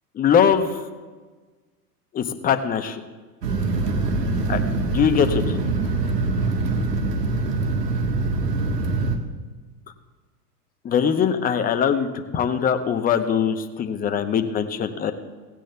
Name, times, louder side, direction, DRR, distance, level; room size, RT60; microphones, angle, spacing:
voice 1, 0.1-0.8 2.1-3.0 4.5-4.6 4.9-5.6 10.8-12.1 12.3-15.1, left 7 dB, 20° left, 8 dB, 0.8 m, -21 dB
sound 1, 3.4-9.2, right 3 dB, 80° right, 1.5 m, -24 dB
17.0 x 16.5 x 2.3 m, 1.4 s
figure-of-eight pair, 95°, 48 cm